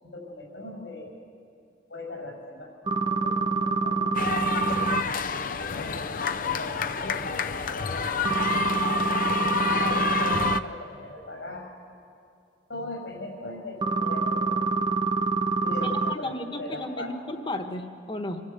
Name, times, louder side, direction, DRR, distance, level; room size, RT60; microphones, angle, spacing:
voice 1, 0.0-1.1 1.9-2.7 3.1-5.1 5.6-8.2 9.7-11.7 12.7-14.6 15.6-17.2, left 2 dB, 90° left, 1 dB, 5.9 m, -40 dB
sound 1, 2.9-5.0 8.2-10.6 13.8-16.1, right 3 dB, 25° right, 0.5 m, -26 dB
sound 2, 4.1-10.6, left 6 dB, 50° left, 0.6 m, -29 dB
voice 2, 16.1-18.4, left 1 dB, 25° left, 6 dB, 1.3 m, -34 dB
26.5 x 14.0 x 8.2 m, 2.4 s
head